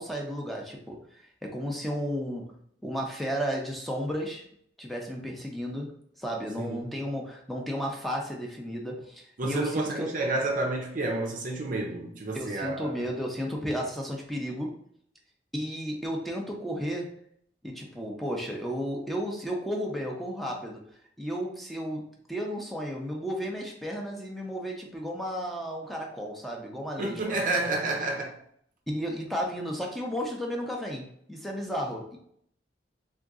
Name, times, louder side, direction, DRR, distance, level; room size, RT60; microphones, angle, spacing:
voice 1, 0.0-2.6 2.8-4.4 4.8-5.9 6.2-10.1 12.3-14.7 15.5-17.1 17.6-20.8 21.2-27.3 28.9-31.0 31.3-32.2, equal, ahead, 0.6 m, -33 dB
voice 2, 6.6-6.9 9.4-12.9 27.0-28.3, right 2 dB, 45° right, 0.5 m, -30 dB
3.5 x 2.9 x 2.5 m
head